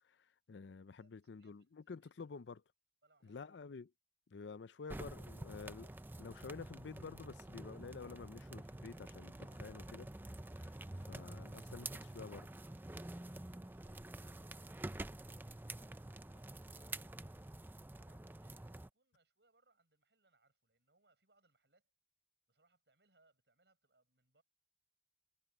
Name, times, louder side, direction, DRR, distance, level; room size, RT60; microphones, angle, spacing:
voice 1, 0.0-2.6 3.2-3.9 4.3-5.9 6.2-12.5, left 4 dB, 90° left, 0.5 m, -50 dB
voice 2, 1.0-2.4 3.0-3.6 16.1-17.4 18.0-21.9 22.5-24.4, right 3 dB, 75° right, 7.4 m, -76 dB
Chiminea Fire, 4.9-18.9, right 2 dB, 10° right, 0.4 m, -48 dB
sound 1, 5.6-17.6, right 1 dB, 35° right, 3.7 m, -70 dB
head